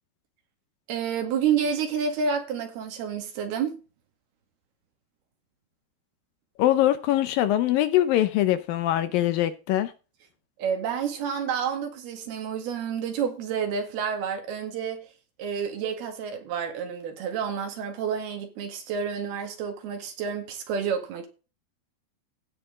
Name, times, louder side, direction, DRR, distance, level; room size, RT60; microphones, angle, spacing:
voice 1, 0.9-3.8 10.6-15.0 15.4-21.3, right 7 dB, 80° right, 3.9 m, -29 dB
voice 2, 6.6-9.9, left 13 dB, 75° left, 2.3 m, -23 dB
16.5 x 6.1 x 3.8 m
omnidirectional pair, 4.5 m